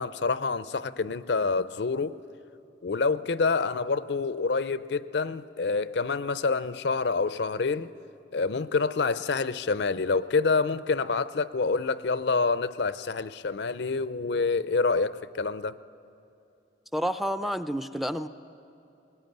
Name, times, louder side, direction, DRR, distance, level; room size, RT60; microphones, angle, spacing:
voice 1, 0.0-2.1 2.8-7.9 8.3-15.8, left 4 dB, 65° left, 0.5 m, -27 dB
voice 2, 16.9-18.3, equal, ahead, 0.4 m, -29 dB
20.0 x 19.5 x 9.3 m
head